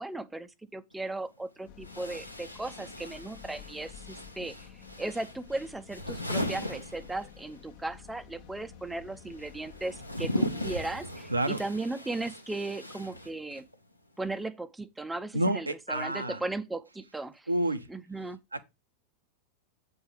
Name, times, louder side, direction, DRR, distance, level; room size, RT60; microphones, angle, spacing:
voice 1, 0.0-4.6 5.0-13.7 14.2-17.5 17.9-18.4, right 2 dB, 5° right, 0.6 m, -36 dB
sound 1, 0.9-1.0 1.8-7.6 7.9-13.8, equal, 85° left, 1.0 m, -38 dB
sound 2, 1.7-11.1, left 9 dB, 45° left, 1.0 m, -51 dB
voice 2, 11.3-11.6 15.3-16.4 17.5-17.9 18.5-18.6, right 1 dB, 80° right, 0.7 m, -29 dB
8.0 x 4.8 x 4.7 m
figure-of-eight pair, 90°, 0 cm